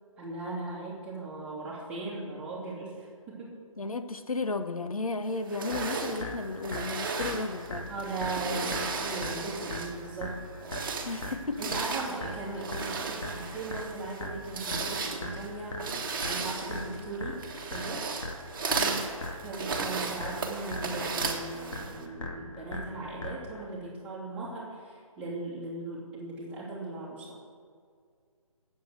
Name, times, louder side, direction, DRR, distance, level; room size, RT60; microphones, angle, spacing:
voice 1, 0.2-3.5 7.9-10.4 11.6-15.8 16.2-17.4 17.7-18.1 19.4-27.4, right 2 dB, 5° right, -8 dB, 2.7 m, -38 dB
voice 2, 3.8-7.9 11.0-11.6 18.8-19.1, left 3 dB, 80° left, 9 dB, 1.0 m, -34 dB
sound 1, 5.5-10.1 10.5-22.1, right 4 dB, 40° right, 1.4 m, -35 dB
sound 2, 5.7-23.7, left 1 dB, 60° left, 2.2 m, -40 dB
9.2 x 7.9 x 7.9 m, 2.1 s
figure-of-eight pair, 155°, 18 cm